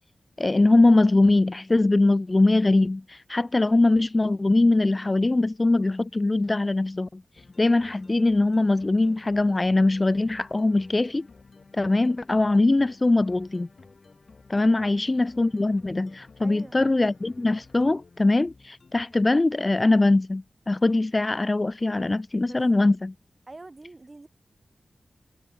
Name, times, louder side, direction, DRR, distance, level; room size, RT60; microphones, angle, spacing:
voice 1, 0.4-7.2 7.6-11.3 11.7-13.7 14.5-23.1, left 2 dB, 30° left, 0.5 m, -22 dB
sound 1, 7.3-19.3, left 4 dB, 50° left, 3.9 m, -53 dB
voice 2, 16.4-16.8 22.4-22.9 23.5-24.3, right 2 dB, 30° right, 2.9 m, -45 dB
wide cardioid pair, 95°, 0 cm